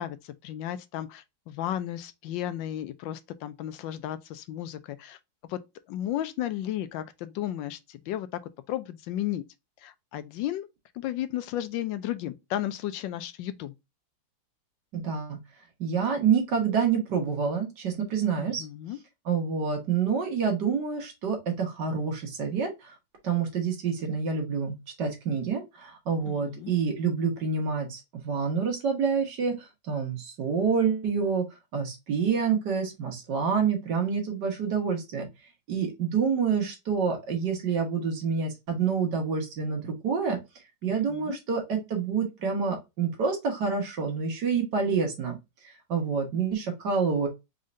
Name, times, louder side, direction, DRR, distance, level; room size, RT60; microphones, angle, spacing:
voice 1, 0.0-5.2 5.5-5.6 5.9-8.3 8.7-9.4 9.8-10.7 11.0-13.7 18.4-19.0 26.2-26.7 41.1-41.4, left 12 dB, 75° left, 1.3 m, -34 dB
voice 2, 14.9-15.4 15.8-18.6 19.2-22.9 23.2-31.4 31.7-35.3 35.7-40.4 40.8-45.3 45.6-47.3, right 6 dB, 60° right, 1.8 m, -27 dB
4.2 x 3.7 x 2.5 m
omnidirectional pair, 2.1 m